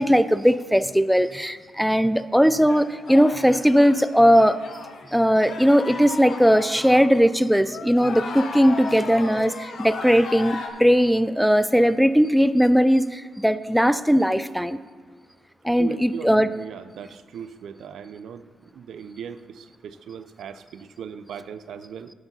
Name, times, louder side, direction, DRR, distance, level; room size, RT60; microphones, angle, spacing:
voice 1, 0.0-4.6 5.1-14.8 15.6-16.5, equal, ahead, 14 dB, 0.3 m, -19 dB
sound 1, 2.7-7.3 7.6-10.7, left 4 dB, 70° left, 1.0 m, -36 dB
voice 2, 15.8-18.5 18.7-22.1, right 7 dB, 80° right, 13 dB, 0.4 m, -38 dB
12.0 x 4.7 x 5.4 m, 1.5 s
cardioid pair, 75°, 0 cm